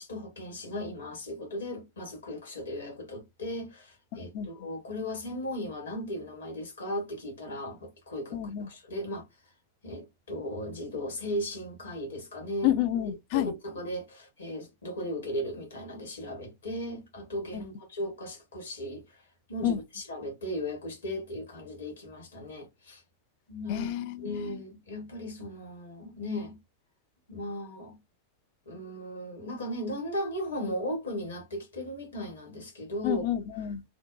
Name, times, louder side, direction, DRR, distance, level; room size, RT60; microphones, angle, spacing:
voice 1, 0.0-9.2 9.8-12.8 13.3-19.2 19.5-23.0 23.5-23.9 24.2-26.6 27.3-28.0 28.7-33.2, equal, 70° left, 1.2 m, -37 dB
voice 2, 4.1-4.5 8.3-8.7 12.6-13.5 17.5-17.6 19.6-19.8 23.7-24.6 33.0-33.8, left 11 dB, 45° left, 0.3 m, -30 dB
2.5 x 2.1 x 2.3 m
figure-of-eight pair, 90°, 0 cm